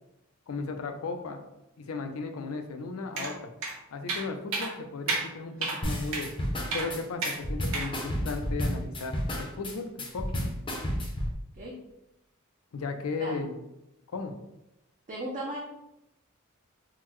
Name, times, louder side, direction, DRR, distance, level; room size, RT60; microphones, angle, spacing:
voice 1, 0.5-1.4 1.8-3.5 3.9-6.3 6.7-10.4 12.7-13.5 14.1-14.3, left 4 dB, 80° left, 6 dB, 0.4 m, -35 dB
sound 1, 3.2-3.3 3.6-3.7 4.1-4.2 4.5-4.7 5.1-5.2 5.6-5.8 6.1-6.3 6.7-6.9 7.2-7.4 7.7-7.9, right 3 dB, 75° right, 0.7 m, -30 dB
sound 2, 5.8-11.3, equal, 25° left, 0.5 m, -31 dB
voice 2, 15.1-15.6, right 1 dB, 35° right, -4 dB, 0.5 m, -36 dB
3.7 x 2.1 x 3.0 m, 0.90 s
head